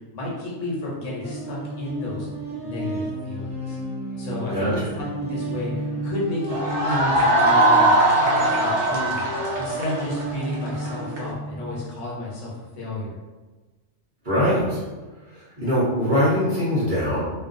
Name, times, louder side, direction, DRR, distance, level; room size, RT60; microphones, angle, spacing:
voice 1, 0.1-2.3 2.6-3.8 4.2-13.2, left 2 dB, 75° left, -4 dB, 1.0 m, -31 dB
sound 1, 1.2-11.9, right 1 dB, 5° right, 0.6 m, -33 dB
sound 2, 6.5-11.2, right 1 dB, 70° right, 0.9 m, -20 dB
voice 2, 14.2-14.8 15.3-17.2, equal, 45° right, -10 dB, 0.9 m, -22 dB
2.4 x 2.3 x 2.5 m, 1.3 s
omnidirectional pair, 1.3 m